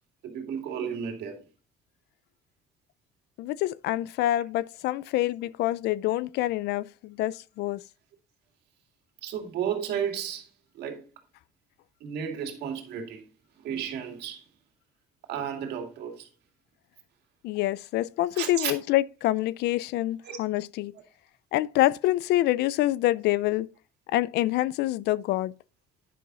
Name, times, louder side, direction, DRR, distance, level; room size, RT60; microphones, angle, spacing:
voice 1, 0.2-1.4 9.2-10.5 10.7-11.1 12.0-13.2 13.6-14.4 15.3-16.3 18.4-18.7 20.2-20.4, right 8 dB, 75° right, 2.4 m, -33 dB
voice 2, 3.4-7.8 17.4-20.9 21.5-23.7 24.1-25.5, left 15 dB, 80° left, 0.5 m, -26 dB
10.0 x 6.1 x 3.9 m
cardioid pair, 110°, 17 cm